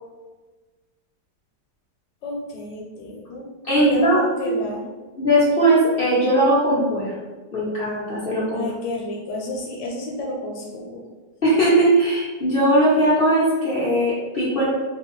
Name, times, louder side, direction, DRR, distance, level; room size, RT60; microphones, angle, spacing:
voice 1, 2.2-4.9 8.5-11.0, left 2 dB, 85° left, -1 dB, 1.2 m, -31 dB
voice 2, 3.6-4.5 5.2-7.1 7.5-8.6 11.4-14.6, right 1 dB, 50° left, -8 dB, 0.7 m, -19 dB
3.2 x 2.3 x 3.0 m, 1.3 s
omnidirectional pair, 1.8 m